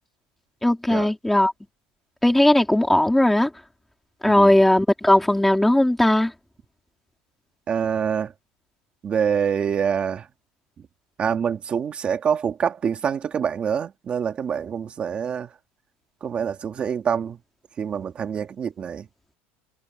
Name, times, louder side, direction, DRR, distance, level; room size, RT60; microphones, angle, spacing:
voice 1, 0.6-1.5 2.2-3.5 4.2-6.3, left 1 dB, 5° left, 3.9 m, -18 dB
voice 2, 7.7-8.3 9.0-10.3 10.8-10.9 11.2-15.5 16.2-17.4 17.8-19.1, right 7 dB, 20° right, 2.1 m, -25 dB
cardioid pair, 175°, 5 cm